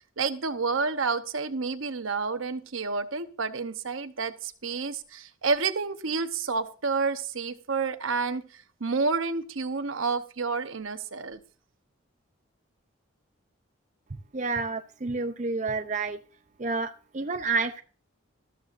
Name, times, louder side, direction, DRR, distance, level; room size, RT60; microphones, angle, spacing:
voice 1, 0.2-11.4, right 4 dB, 85° right, 10 dB, 0.9 m, -29 dB
voice 2, 14.3-16.2 16.6-17.8, right 4 dB, 35° right, 8 dB, 0.5 m, -29 dB
13.5 x 13.0 x 2.6 m, 0.38 s
head